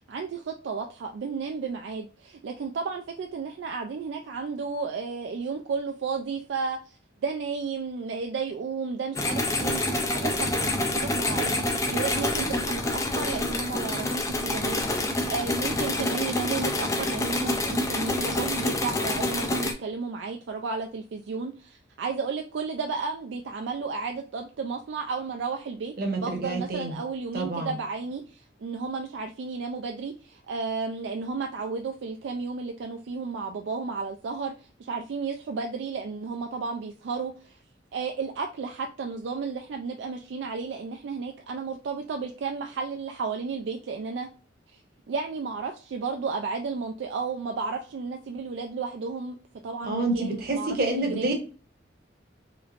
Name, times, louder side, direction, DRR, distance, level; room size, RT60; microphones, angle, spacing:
voice 1, 0.1-6.9 7.2-25.9 26.2-37.6 37.9-44.3 44.7-44.8 45.1-49.4 49.6-51.3, right 4 dB, 75° right, 4 dB, 0.3 m, -33 dB
sound 1, 9.2-19.7, left 2 dB, 15° left, 0.4 m, -27 dB
voice 2, 26.0-27.0 27.3-27.7 49.8-51.3, right 2 dB, 50° right, 3 dB, 0.9 m, -28 dB
3.2 x 3.0 x 2.4 m, 0.37 s
head